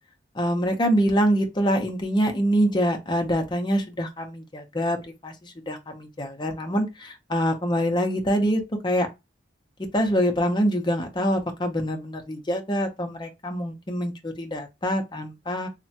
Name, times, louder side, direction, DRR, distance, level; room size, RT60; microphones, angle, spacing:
voice 1, 0.4-5.0 5.2-9.1 9.9-15.7, equal, 25° left, 0.6 m, -25 dB
3.2 x 2.1 x 2.7 m
head